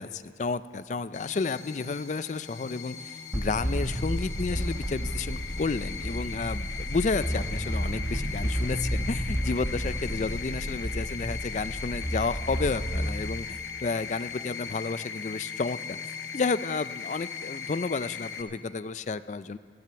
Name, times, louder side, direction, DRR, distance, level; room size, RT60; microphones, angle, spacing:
voice 1, 0.0-19.6, left 4 dB, 40° left, 15 dB, 0.4 m, -31 dB
sound 1, 1.1-18.4, left 6 dB, 80° left, 0.9 m, -39 dB
sound 2, 3.3-13.1, equal, 20° right, 1.0 m, -31 dB
15.0 x 10.5 x 6.9 m, 2.3 s
head